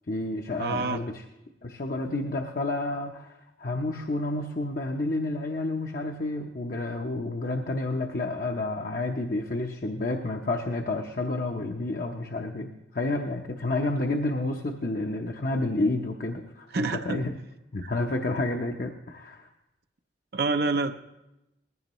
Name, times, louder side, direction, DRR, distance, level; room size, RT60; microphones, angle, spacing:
voice 1, 0.1-1.2 1.6-16.7 16.9-17.3 17.7-19.5, left 2 dB, 50° left, 2 dB, 0.7 m, -30 dB
voice 2, 0.6-1.0 16.7-17.2 17.8-17.9 20.3-20.9, right 3 dB, 60° right, 7 dB, 0.6 m, -27 dB
19.5 x 15.0 x 3.1 m, 0.93 s
head